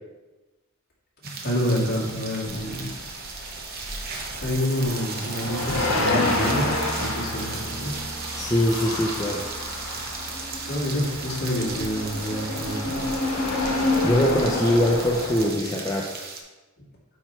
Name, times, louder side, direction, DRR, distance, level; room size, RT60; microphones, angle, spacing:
sound 1, 1.2-16.4, right 4 dB, 45° right, 0.8 m, -36 dB
voice 1, 1.4-2.9 4.4-7.9 10.7-13.0, equal, 50° left, -6 dB, 2.3 m, -28 dB
sound 2, 2.5-15.5, left 2 dB, 75° left, 1.4 m, -29 dB
voice 2, 8.4-9.4 14.0-16.1, left 1 dB, 15° left, -3 dB, 0.5 m, -22 dB
9.1 x 3.1 x 4.4 m, 1.1 s
head